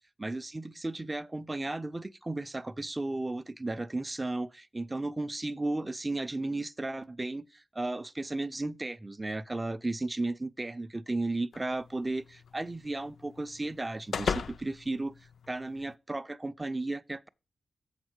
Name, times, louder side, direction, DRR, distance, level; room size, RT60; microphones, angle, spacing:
voice 1, 0.2-15.1 15.5-17.3, right 2 dB, 20° right, 0.4 m, -34 dB
sound 1, 11.5-15.9, left 6 dB, 80° left, 0.4 m, -39 dB
7.2 x 4.4 x 6.2 m
wide cardioid pair, 135°, 0 cm